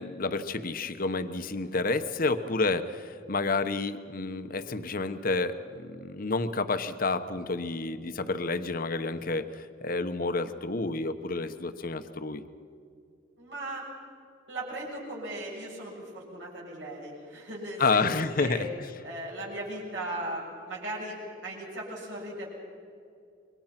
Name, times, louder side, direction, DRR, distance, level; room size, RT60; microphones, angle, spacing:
voice 1, 0.0-12.4 17.8-18.9, left 3 dB, 50° left, 10 dB, 1.1 m, -30 dB
voice 2, 13.4-13.9 14.5-18.1 18.4-18.6 19.0-22.5, right 1 dB, 75° right, -4 dB, 7.5 m, -37 dB
27.0 x 23.5 x 5.9 m, 2.4 s
head